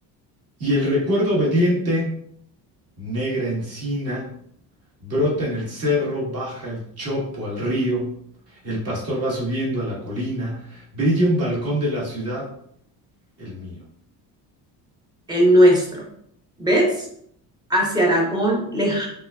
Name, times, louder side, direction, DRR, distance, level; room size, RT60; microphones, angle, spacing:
voice 1, 0.6-2.1 3.0-4.3 5.0-8.1 8.5-12.5 13.4-13.8, equal, 35° right, -4 dB, 1.2 m, -24 dB
voice 2, 15.3-16.1 16.6-17.0 17.7-19.1, equal, 10° right, -2 dB, 0.6 m, -18 dB
3.6 x 3.4 x 2.2 m, 0.68 s
cardioid pair, 175°, 41 cm